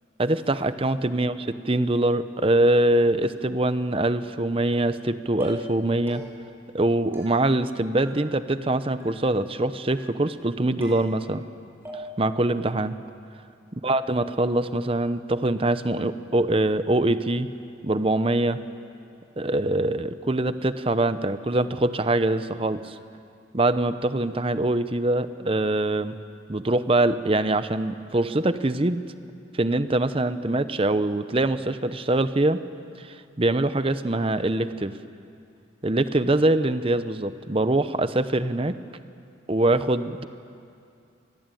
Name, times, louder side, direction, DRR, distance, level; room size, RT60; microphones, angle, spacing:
voice 1, 0.2-6.2 6.7-11.4 12.2-12.9 13.7-17.5 17.8-18.6 19.4-22.9 23.5-26.1 26.5-29.0 29.5-32.6 33.0-34.9 35.8-38.7 39.5-40.3, right 2 dB, 30° right, 12 dB, 0.8 m, -23 dB
sound 1, 4.7-5.1 5.4-5.8 6.1-6.6 7.1-7.7 8.0-8.7 9.0-9.5 9.9-10.4 10.8-11.5 11.8-12.4, left 1 dB, 15° right, 5.6 m, -42 dB
26.5 x 20.5 x 9.1 m, 2.5 s
head